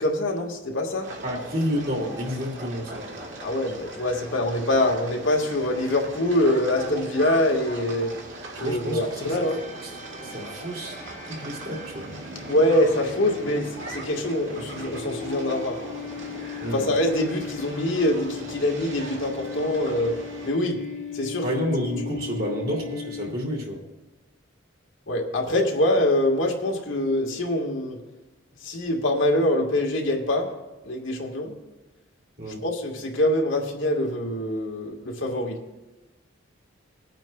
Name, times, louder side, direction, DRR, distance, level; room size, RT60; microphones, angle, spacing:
voice 1, 0.0-1.1 3.4-8.1 8.6-9.6 12.5-15.8 16.7-20.1 20.4-20.8 21.1-21.4 25.1-28.0 28.6-30.5 30.8-31.5 32.6-35.6, left 1 dB, 75° left, 1 dB, 1.5 m, -24 dB
sound 1, 1.0-20.5, right 2 dB, 65° right, 2.1 m, -39 dB
voice 2, 1.2-3.1 8.5-9.4 9.8-11.0 11.3-12.1 16.6-16.8 21.4-23.8 32.4-32.6, equal, 45° right, -1 dB, 2.2 m, -30 dB
sound 2, 9.3-23.8, left 7 dB, 35° left, 0.9 m, -38 dB
21.5 x 9.0 x 2.2 m, 1.1 s
head